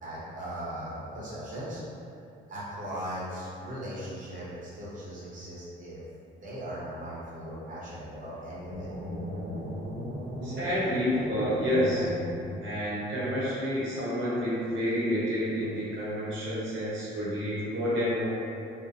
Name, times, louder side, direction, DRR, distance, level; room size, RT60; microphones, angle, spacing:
voice 1, 0.0-1.8 2.5-6.0 6.4-8.9, equal, 40° right, -9 dB, 0.9 m, -38 dB
sound 1, 8.7-13.0, equal, 20° right, 1.3 m, -36 dB
voice 2, 10.4-12.1 12.6-18.3, equal, 75° right, -9 dB, 0.7 m, -29 dB
2.4 x 2.1 x 2.5 m, 2.6 s
cardioid pair, 90°, 20 cm